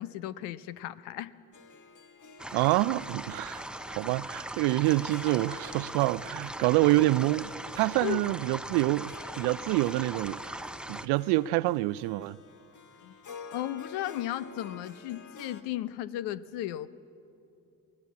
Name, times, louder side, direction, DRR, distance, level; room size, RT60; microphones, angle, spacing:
voice 1, 0.0-1.3 8.0-8.2 13.0-13.1 13.5-16.9, left 13 dB, 70° left, 0.8 m, -35 dB
Harp, 1.5-15.6, left 4 dB, 45° left, 1.6 m, -50 dB
sound 1, 2.4-11.1, right 1 dB, ahead, 0.8 m, -40 dB
voice 2, 2.5-10.5 10.9-12.4, right 19 dB, 65° right, 0.5 m, -27 dB
22.5 x 19.0 x 8.4 m
hypercardioid pair, 55°, 42 cm